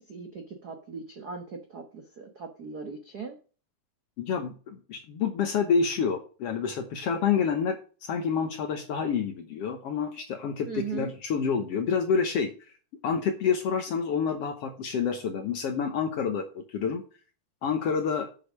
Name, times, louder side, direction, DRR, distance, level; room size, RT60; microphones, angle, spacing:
voice 1, 0.0-3.4 10.6-11.1, right 5 dB, 80° right, 5 dB, 0.8 m, -39 dB
voice 2, 4.2-12.5 13.0-17.0 17.6-18.3, left 6 dB, 65° left, 7 dB, 1.7 m, -28 dB
8.1 x 6.4 x 6.3 m, 0.37 s
omnidirectional pair, 3.7 m